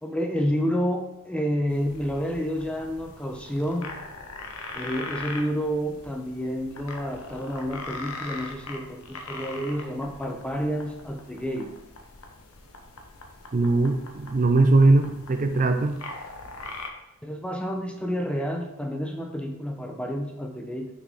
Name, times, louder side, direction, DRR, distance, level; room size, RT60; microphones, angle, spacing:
voice 1, 0.0-3.9 4.7-11.7 17.2-20.9, equal, 5° left, 3 dB, 0.6 m, -29 dB
sound 1, 1.7-16.9, left 3 dB, 70° left, 1.0 m, -41 dB
voice 2, 13.5-16.0, right 2 dB, 35° right, 7 dB, 0.5 m, -20 dB
6.2 x 6.0 x 3.6 m, 0.91 s
head